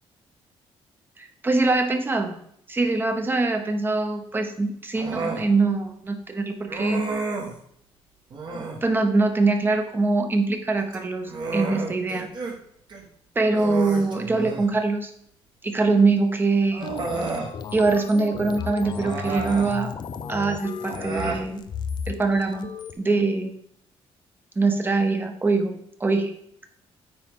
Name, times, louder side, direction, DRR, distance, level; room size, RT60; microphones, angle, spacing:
voice 1, 1.2-2.3 2.7-7.2 8.8-12.3 13.4-15.1 15.6-16.9 17.7-19.9 20.3-21.6 22.1-22.7 23.0-23.5 24.6-25.7 26.0-26.3, right 3 dB, 20° right, 5 dB, 0.9 m, -23 dB
Human voice, 4.9-5.5 6.7-7.6 8.3-8.8 10.8-12.6 12.9-13.0 13.5-14.7 15.9-16.0 16.7-17.5 18.9-19.7 20.8-21.5, right 3 dB, 45° right, 1.4 m, -31 dB
sound 1, 16.8-22.9, left 6 dB, 45° left, 0.5 m, -34 dB
8.8 x 4.5 x 3.7 m, 0.68 s
cardioid pair, 145°, 10 cm